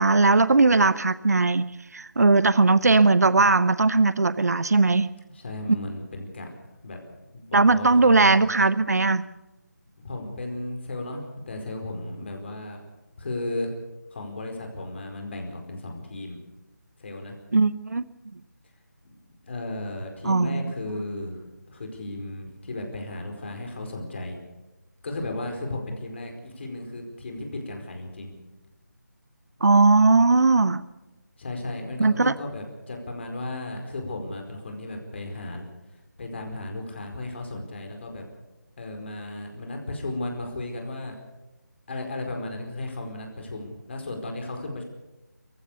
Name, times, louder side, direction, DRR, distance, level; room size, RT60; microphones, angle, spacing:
voice 1, 0.0-5.1 5.7-5.8 7.5-9.2 17.5-18.0 20.2-20.7 29.6-30.8 32.0-32.3, right 3 dB, 60° right, 16 dB, 0.8 m, -19 dB
voice 2, 5.3-6.5 6.8-7.0 7.3-8.4 10.0-11.2 11.5-12.8 13.2-13.7 14.1-16.4 17.0-17.4 19.4-21.4 21.7-24.4 25.0-28.3 31.4-35.6 36.2-38.2 38.8-41.1 41.9-44.8, left 2 dB, 40° left, 3 dB, 4.7 m, -35 dB
25.5 x 15.5 x 6.9 m, 1.0 s
figure-of-eight pair, 160°, 10 cm